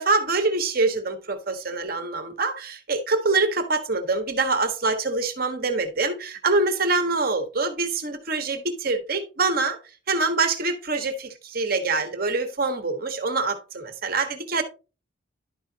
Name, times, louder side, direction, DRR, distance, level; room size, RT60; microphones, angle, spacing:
voice 1, 0.0-9.8 10.1-14.6, right 3 dB, 50° right, 1.3 m, -25 dB
11.5 x 5.0 x 2.8 m
head